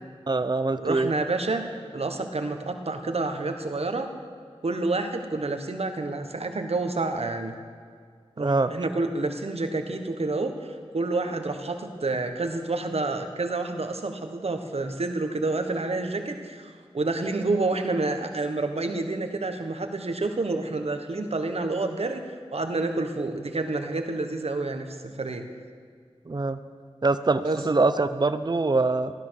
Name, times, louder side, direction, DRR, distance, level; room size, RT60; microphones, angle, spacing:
voice 1, 0.3-1.1 8.4-8.7 26.3-26.6 27.0-29.1, right 3 dB, 40° right, 11 dB, 0.7 m, -24 dB
voice 2, 0.8-1.7 1.9-4.1 4.6-7.5 8.4-22.2 22.5-25.5 27.4-27.6, right 3 dB, 70° right, 6 dB, 1.4 m, -29 dB
15.5 x 13.5 x 6.5 m, 2.1 s
wide cardioid pair, 55°, 11 cm